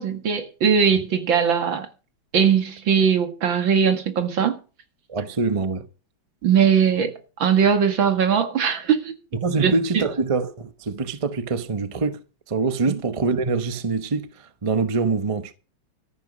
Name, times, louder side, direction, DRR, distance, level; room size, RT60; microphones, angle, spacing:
voice 1, 0.0-1.9 2.3-4.6 6.4-7.1 7.4-9.1 9.6-9.7, right 7 dB, 60° right, 2.5 m, -20 dB
voice 2, 5.1-5.9 9.3-12.2 12.5-15.5, right 4 dB, 35° right, 0.5 m, -24 dB
13.5 x 10.5 x 5.2 m
omnidirectional pair, 2.4 m